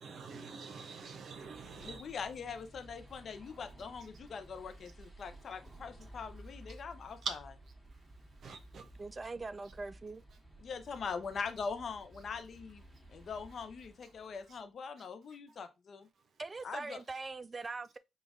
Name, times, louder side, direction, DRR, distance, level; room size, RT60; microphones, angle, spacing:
voice 1, 0.0-2.0 7.2-7.3 8.4-8.9, right 5 dB, 60° right, 0.9 m, -43 dB
sound 1, 1.2-14.6, right 1 dB, ahead, 1.6 m, -55 dB
voice 2, 1.8-7.4 10.6-12.8 13.1-16.1 16.6-17.0, left 5 dB, 55° left, 0.6 m, -42 dB
voice 3, 8.8-10.2 16.4-18.0, right 3 dB, 30° right, 0.3 m, -42 dB
5.1 x 2.4 x 3.6 m
supercardioid pair, 65°, 0 cm